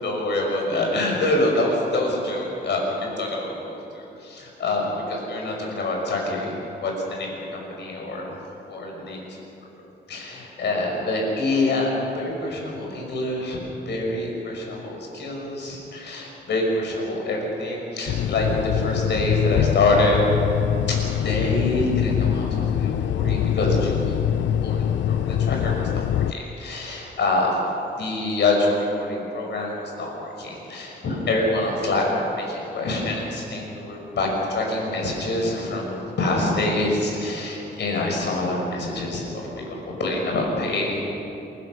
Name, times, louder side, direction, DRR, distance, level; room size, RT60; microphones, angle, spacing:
voice 1, 0.0-8.3 8.6-9.2 10.1-13.6 13.9-18.5 18.7-20.2 20.9-24.2 24.6-27.6 28.0-39.4 39.7-41.0, left 2 dB, 70° left, -1 dB, 5.9 m, -26 dB
sound 1, 18.1-26.3, left 10 dB, 85° left, 0.5 m, -24 dB
28.0 x 16.0 x 6.5 m, 2.9 s
wide cardioid pair, 165°, 19 cm